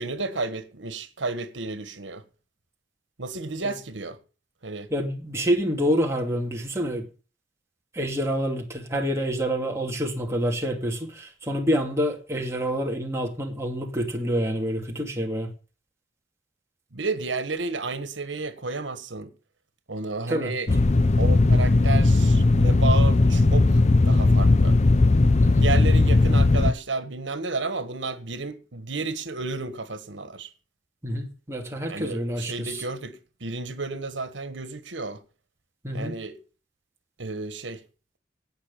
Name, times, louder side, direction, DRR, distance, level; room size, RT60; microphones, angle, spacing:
voice 1, 0.0-2.2 3.2-4.2 4.6-4.9 16.9-19.3 19.9-20.7 21.2-23.8 24.0-24.8 25.6-30.5 31.9-35.2 35.9-36.4 37.2-37.8, right 3 dB, 90° right, 1.6 m, -32 dB
voice 2, 4.9-7.1 7.9-15.5 20.3-20.5 25.4-25.6 31.0-32.8 35.8-36.2, equal, 15° right, 2.5 m, -27 dB
sound 1, 20.7-26.7, left 2 dB, 40° left, 0.6 m, -18 dB
17.5 x 6.0 x 7.1 m
head